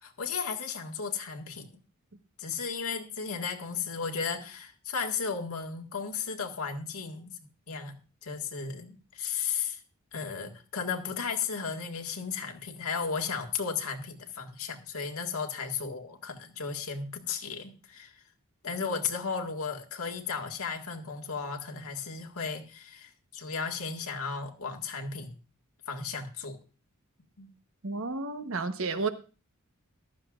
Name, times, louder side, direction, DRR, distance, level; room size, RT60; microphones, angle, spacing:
voice 1, 0.0-1.8 2.4-7.3 7.7-8.0 8.2-9.8 10.1-18.1 18.6-25.4 25.9-26.6 27.4-27.5, left 5 dB, 80° left, 1.8 m, -35 dB
voice 2, 27.8-29.1, right 3 dB, 65° right, 1.1 m, -31 dB
14.5 x 12.5 x 2.4 m
head